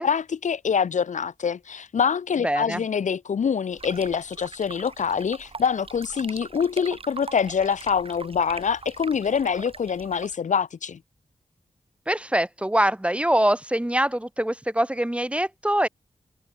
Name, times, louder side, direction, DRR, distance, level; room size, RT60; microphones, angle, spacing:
voice 1, 0.0-11.0, left 6 dB, 70° left, 0.8 m, -25 dB
voice 2, 2.4-2.8 12.1-15.9, right 1 dB, 10° right, 1.0 m, -24 dB
sound 1, 3.7-10.4, right 4 dB, 45° right, 5.5 m, -41 dB
cardioid pair, 70°, 13 cm